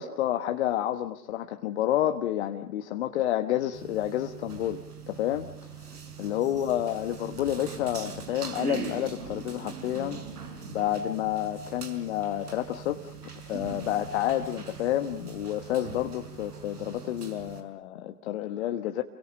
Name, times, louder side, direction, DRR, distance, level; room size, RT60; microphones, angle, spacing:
voice 1, 0.0-5.5 5.8-10.2 10.7-13.1 13.5-19.0, left 12 dB, 40° left, 7 dB, 1.4 m, -29 dB
sound 1, 3.7-17.6, right 5 dB, 65° right, 5.8 m, -41 dB
29.0 x 23.5 x 6.5 m, 0.64 s
figure-of-eight pair, 115°, 49 cm